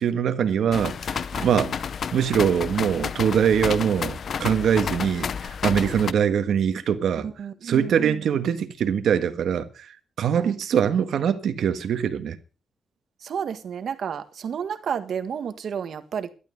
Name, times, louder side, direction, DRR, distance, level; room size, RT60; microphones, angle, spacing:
voice 1, 0.0-1.8 2.1-5.3 5.6-7.3 7.6-9.9 10.2-12.4, right 8 dB, 90° right, 1.6 m, -23 dB
sound 1, 0.7-6.1, left 7 dB, 55° left, 0.7 m, -30 dB
voice 2, 7.2-8.3 10.3-10.5 13.2-16.3, right 7 dB, 65° right, 1.7 m, -31 dB
14.0 x 12.0 x 5.3 m
wide cardioid pair, 160°, 0 cm